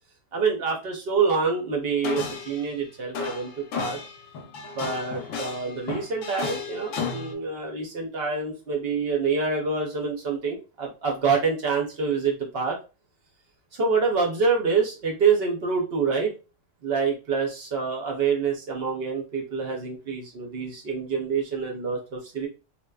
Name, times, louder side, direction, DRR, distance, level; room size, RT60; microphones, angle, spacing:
voice 1, 0.3-4.0 4.7-12.8 13.7-16.3 16.8-22.5, right 5 dB, 60° right, 1 dB, 0.6 m, -26 dB
sound 1, 2.0-2.8 3.1-7.3, left 5 dB, 70° left, 0.9 m, -33 dB
2.8 x 2.2 x 2.2 m, 0.32 s
omnidirectional pair, 1.5 m